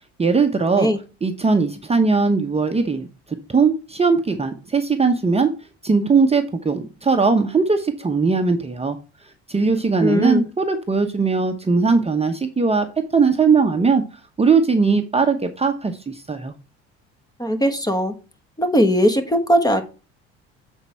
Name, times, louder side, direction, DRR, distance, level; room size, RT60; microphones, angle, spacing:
voice 1, 0.2-0.9 1.2-3.1 3.5-5.5 5.8-9.0 9.5-12.9 13.1-14.0 14.4-16.5, right 4 dB, 20° right, 5 dB, 0.9 m, -19 dB
voice 2, 10.0-10.5 17.4-18.1 18.6-19.8, equal, 10° left, 8 dB, 1.3 m, -19 dB
8.0 x 4.5 x 4.3 m, 0.34 s
hypercardioid pair, 70°, 32 cm